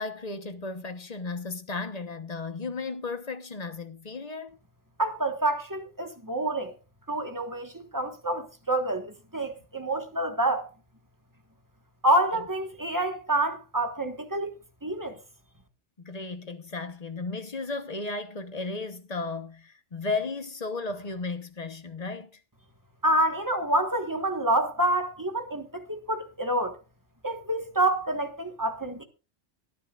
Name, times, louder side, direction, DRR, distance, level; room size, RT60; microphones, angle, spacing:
voice 1, 0.0-4.6 12.3-12.4 16.0-22.3, left 3 dB, 35° left, 1.1 m, -34 dB
voice 2, 5.0-6.7 7.1-10.7 12.0-14.5 14.8-15.2 23.0-26.8 27.2-29.0, right 1 dB, 15° right, 1.3 m, -27 dB
24.5 x 9.4 x 2.4 m
omnidirectional pair, 1.2 m